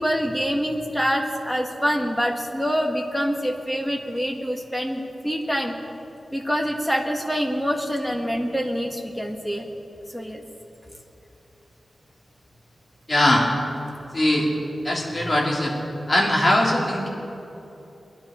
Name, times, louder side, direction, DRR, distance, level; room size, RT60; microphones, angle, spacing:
voice 1, 0.0-5.7 6.3-9.7 10.1-10.4, equal, 5° left, 2 dB, 1.8 m, -25 dB
voice 2, 13.1-13.5 14.1-14.5 14.8-15.8 16.1-17.1, left 1 dB, 30° left, -2 dB, 3.0 m, -20 dB
23.0 x 10.5 x 4.5 m, 2.9 s
wide cardioid pair, 85°, 0 cm